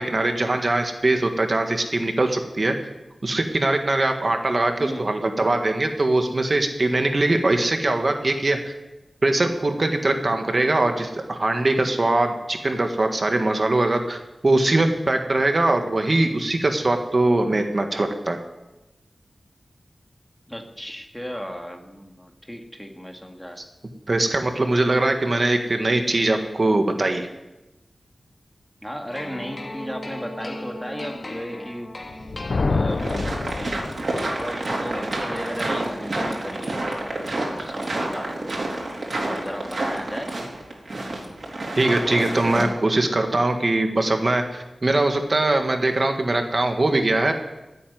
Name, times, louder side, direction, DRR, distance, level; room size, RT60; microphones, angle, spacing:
voice 1, 0.0-2.8 3.2-8.7 9.2-14.2 14.4-18.4 24.1-27.3 41.8-47.3, right 2 dB, 45° right, 5 dB, 1.7 m, -21 dB
voice 2, 4.8-5.1 20.5-23.6 28.8-31.9 32.7-33.3 34.1-38.6 39.3-40.3, equal, 5° left, 3 dB, 2.1 m, -35 dB
sound 1, 29.1-33.2, left 1 dB, 45° left, 2.2 m, -37 dB
Thunder, 32.1-34.4, left 3 dB, 65° left, 0.7 m, -27 dB
sound 2, 32.9-42.6, right 2 dB, 60° right, 3.7 m, -29 dB
15.5 x 8.6 x 9.6 m, 1.0 s
wide cardioid pair, 80°, 0 cm